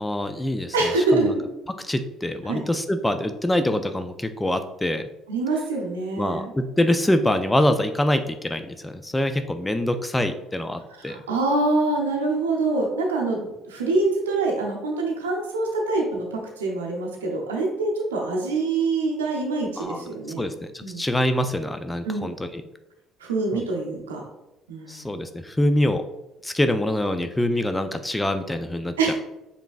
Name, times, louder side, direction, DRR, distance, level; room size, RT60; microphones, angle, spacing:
voice 1, 0.0-0.7 1.1-1.3 1.9-5.0 6.2-11.2 19.8-20.1 20.4-22.6 23.5-23.6 24.9-26.0 26.4-29.1, left 1 dB, 15° left, 9 dB, 0.4 m, -25 dB
voice 2, 0.7-1.4 2.4-2.6 5.3-6.5 10.9-20.4 20.8-21.1 22.0-22.3 23.2-24.2 24.7-25.1 29.0-29.1, right 3 dB, 90° right, -1 dB, 0.6 m, -25 dB
5.0 x 3.3 x 2.4 m, 0.97 s
hypercardioid pair, 55°, 0 cm